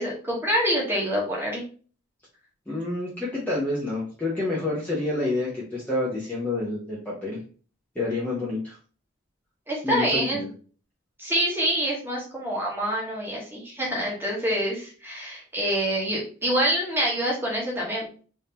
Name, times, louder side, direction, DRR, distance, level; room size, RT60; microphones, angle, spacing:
voice 1, 0.0-1.6 9.7-10.4 11.2-18.1, equal, 10° right, -3 dB, 1.0 m, -26 dB
voice 2, 2.7-7.4 7.9-8.8 9.8-10.5, left 2 dB, 5° left, -7 dB, 0.7 m, -28 dB
3.5 x 2.7 x 2.8 m, 0.40 s
head